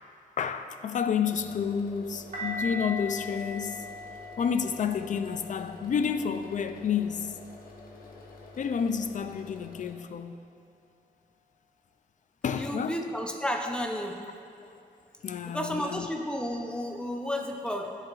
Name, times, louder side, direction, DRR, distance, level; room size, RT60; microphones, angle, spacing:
voice 1, 0.4-3.9 4.4-7.4 8.6-10.4 12.4-13.0 14.7-14.8 15.2-16.1, left 7 dB, 55° left, 0.4 m, -30 dB
sound 1, 1.2-9.9, left 3 dB, 80° left, 1.0 m, -49 dB
sound 2, 2.3-7.3 7.9-8.1, left 1 dB, 60° right, 1.6 m, -40 dB
voice 2, 12.6-14.2 15.5-18.0, equal, 5° left, 0.6 m, -32 dB
10.5 x 7.3 x 2.4 m
wide cardioid pair, 155°, 15 cm